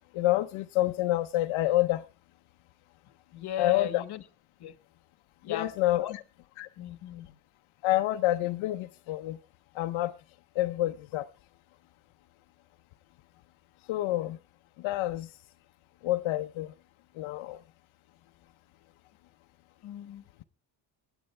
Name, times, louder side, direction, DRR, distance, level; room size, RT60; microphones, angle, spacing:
voice 1, 0.1-2.0 3.6-4.0 5.5-6.2 6.6-6.7 7.8-9.4 9.7-10.1 10.5-11.3 13.9-14.4 14.8-15.3 16.0-16.7 17.2-17.6, left 15 dB, 85° left, 0.8 m, -28 dB
voice 2, 3.3-4.2 4.6-4.7 5.4-6.2 6.8-7.4 19.8-20.4, left 10 dB, 55° left, 1.3 m, -37 dB
25.0 x 9.0 x 3.2 m
cardioid pair, 145°, 47 cm